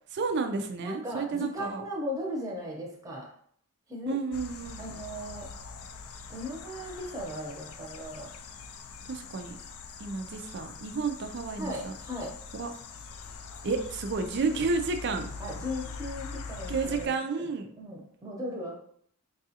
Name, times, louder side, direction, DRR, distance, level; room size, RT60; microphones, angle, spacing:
voice 1, 0.1-1.8 4.1-4.9 9.1-9.5 10.0-11.9 12.5-12.7 13.6-15.3 16.7-17.7, right 4 dB, 50° right, 6 dB, 0.4 m, -31 dB
voice 2, 0.8-3.3 3.9-4.2 4.8-5.5 6.3-8.3 11.6-12.3 15.4-17.1 17.4-17.5 17.8-18.8, equal, 15° right, -2 dB, 0.8 m, -37 dB
sound 1, 4.3-17.1, left 4 dB, 65° left, 0.4 m, -43 dB
4.7 x 2.4 x 2.8 m, 0.63 s
head